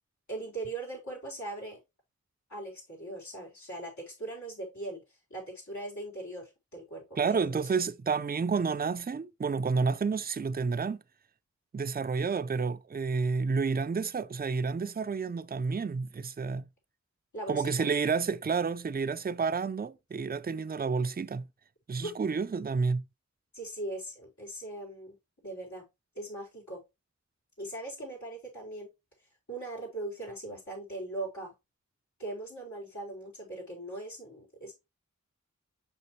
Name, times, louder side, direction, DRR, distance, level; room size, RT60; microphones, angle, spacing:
voice 1, 0.3-1.8 2.5-5.0 5.3-7.8 17.3-17.7 22.0-22.1 23.5-25.2 25.4-25.9 26.1-26.8 27.6-28.9 29.5-31.5 32.2-34.7, right 2 dB, 75° left, 4.4 m, -40 dB
voice 2, 7.2-11.0 11.7-16.7 17.5-21.4 21.9-23.0, right 5 dB, 30° right, 0.5 m, -30 dB
6.9 x 5.6 x 3.1 m
wide cardioid pair, 65°, 29 cm